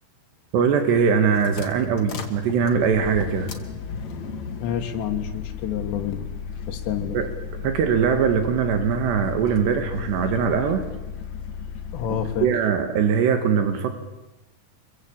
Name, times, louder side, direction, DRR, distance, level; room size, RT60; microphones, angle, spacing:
voice 1, 0.5-3.5 7.1-7.3 7.6-10.8 12.4-13.9, right 6 dB, 80° right, 7 dB, 3.9 m, -21 dB
sound 1, 1.0-12.5, left 6 dB, 50° left, 3.1 m, -35 dB
voice 2, 4.6-6.3 6.7-7.2 11.9-12.5, left 9 dB, 80° left, 2 dB, 3.7 m, -28 dB
27.0 x 23.5 x 8.8 m, 1.0 s
omnidirectional pair, 4.9 m